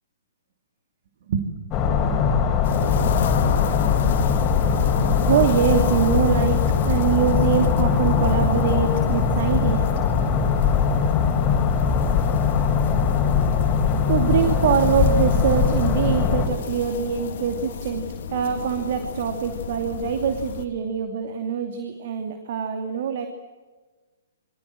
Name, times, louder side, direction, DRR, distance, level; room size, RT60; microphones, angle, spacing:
voice 1, 1.3-1.6 4.0-4.1 4.6-6.6 6.8-10.5 12.9-13.0 14.1-23.3, right 8 dB, 45° right, 6 dB, 2.7 m, -24 dB
sound 1, 1.7-16.5, left 6 dB, 25° left, 4.5 m, -21 dB
sound 2, 2.6-20.7, left 7 dB, 50° left, 2.5 m, -33 dB
28.5 x 24.0 x 7.7 m, 1.3 s
figure-of-eight pair, 120°, 0 cm